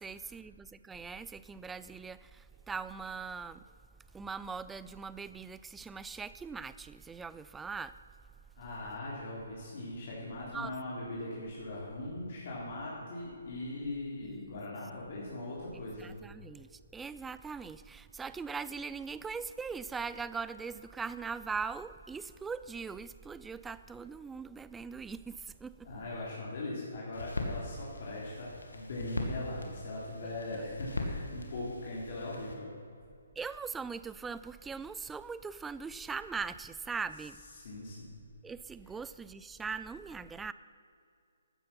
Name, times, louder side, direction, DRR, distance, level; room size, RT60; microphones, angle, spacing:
voice 1, 0.0-3.6 4.1-8.0 10.4-10.7 14.2-14.6 15.7-25.9 30.2-30.6 33.4-37.4 38.4-40.5, right 5 dB, 10° right, 15 dB, 0.3 m, -41 dB
voice 2, 8.6-16.2 25.8-32.7 37.6-38.2, left 2 dB, 55° left, -5 dB, 3.5 m, -40 dB
sound 1, 27.1-32.5, left 2 dB, 85° left, 2.2 m, -40 dB
14.0 x 9.6 x 5.8 m, 2.4 s
hypercardioid pair, 150°, 0 cm